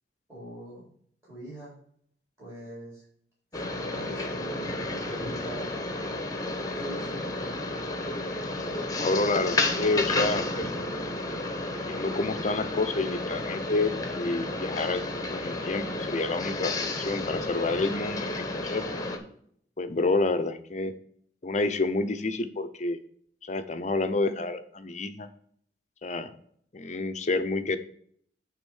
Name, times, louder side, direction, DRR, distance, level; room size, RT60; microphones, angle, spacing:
voice 1, 0.3-0.8 1.2-1.7 2.4-3.0 3.5-5.7 6.7-7.8, right 1 dB, 15° right, -7 dB, 4.0 m, -43 dB
sound 1, 3.5-19.2, left 2 dB, 20° left, 1.0 m, -32 dB
voice 2, 9.0-10.5 11.8-15.0 15.3-16.7 17.0-18.4 18.7-18.9 19.8-20.9 21.4-23.0 23.4-25.3 26.0-26.3 26.7-27.8, left 3 dB, 40° left, 9 dB, 0.6 m, -28 dB
8.8 x 3.6 x 6.3 m, 0.63 s
head